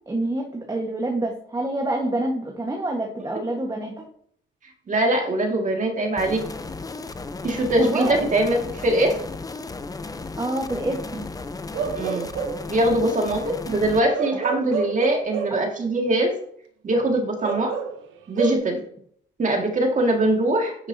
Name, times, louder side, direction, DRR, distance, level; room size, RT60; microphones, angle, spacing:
voice 1, 0.1-3.9 7.8-8.2 10.4-11.3, right 1 dB, 20° right, 0 dB, 1.3 m, -27 dB
voice 2, 4.9-6.4 7.4-9.1 12.0-12.3 12.7-13.4 13.7-16.3 16.8-17.7 18.3-18.8 19.4-20.9, right 1 dB, 40° right, 2 dB, 1.9 m, -22 dB
sound 1, 6.2-14.0, left 3 dB, 20° left, 0.6 m, -35 dB
Bark / Livestock farm animals working animals, 11.7-12.7 14.1-15.7 17.4-18.5, right 6 dB, 80° right, 0.9 m, -29 dB
9.9 x 5.9 x 2.7 m, 0.62 s
cardioid pair, 90°, 20 cm